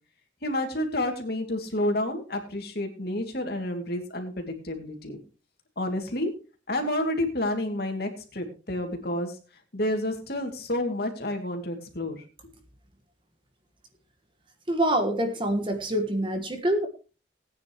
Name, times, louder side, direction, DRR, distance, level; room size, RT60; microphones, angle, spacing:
voice 1, 0.4-5.2 5.8-6.3 6.7-9.4 9.7-12.2, left 1 dB, 55° left, 4 dB, 2.6 m, -29 dB
voice 2, 14.7-16.9, right 1 dB, 25° right, 6 dB, 1.5 m, -25 dB
18.5 x 9.5 x 3.1 m, 0.33 s
head